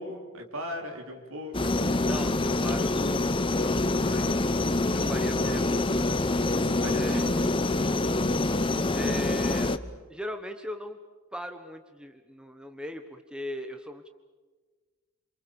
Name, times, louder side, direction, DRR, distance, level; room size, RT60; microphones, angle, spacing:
voice 1, 0.0-1.9 6.3-7.3, equal, 70° right, 2 dB, 4.6 m, -40 dB
sound 1, 1.5-9.8, left 2 dB, 25° left, 0.8 m, -26 dB
voice 2, 2.0-4.4 4.9-5.8 6.9-8.0 8.6-9.7 10.1-11.0 11.3-14.1, equal, 5° right, 6 dB, 1.2 m, -39 dB
28.5 x 27.0 x 7.0 m, 1.4 s
head